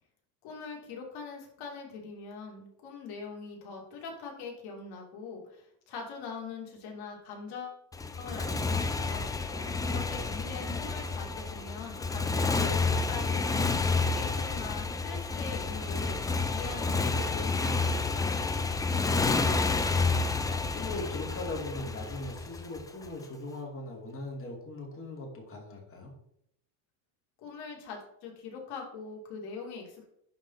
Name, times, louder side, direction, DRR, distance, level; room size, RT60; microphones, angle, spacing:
voice 1, 0.4-7.8 8.2-9.3 9.8-16.2 16.5-18.5 27.4-30.1, left 4 dB, 65° left, 0 dB, 2.8 m, -42 dB
Motorcycle, 7.9-23.1, left 3 dB, 10° left, 0.4 m, -30 dB
voice 2, 9.5-10.0 18.8-26.1, left 2 dB, 30° left, 0 dB, 2.6 m, -41 dB
11.0 x 4.1 x 4.1 m, 0.74 s
cardioid pair, 130°, 42 cm